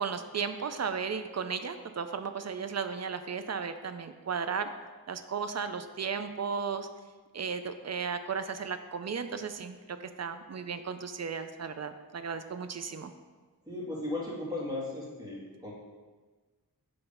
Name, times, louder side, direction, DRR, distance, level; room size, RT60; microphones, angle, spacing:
voice 1, 0.0-4.7 5.1-6.9 7.3-13.1, right 6 dB, 45° right, 9 dB, 0.4 m, -35 dB
voice 2, 13.7-15.7, left 2 dB, 10° right, -5 dB, 1.8 m, -36 dB
6.9 x 3.2 x 5.4 m, 1.3 s
wide cardioid pair, 90°, 37 cm